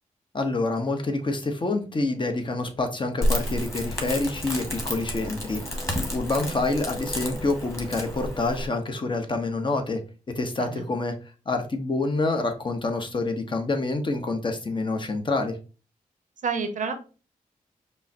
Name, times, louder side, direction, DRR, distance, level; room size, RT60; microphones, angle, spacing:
voice 1, 0.3-10.0 10.4-11.1 11.5-15.6, left 2 dB, 35° left, 5 dB, 1.0 m, -27 dB
Crackle, 3.2-8.7, equal, 20° left, 1.6 m, -30 dB
voice 2, 16.4-16.9, right 5 dB, 65° right, 7 dB, 0.8 m, -29 dB
5.3 x 2.2 x 2.7 m, 0.34 s
cardioid pair, 60°, 14 cm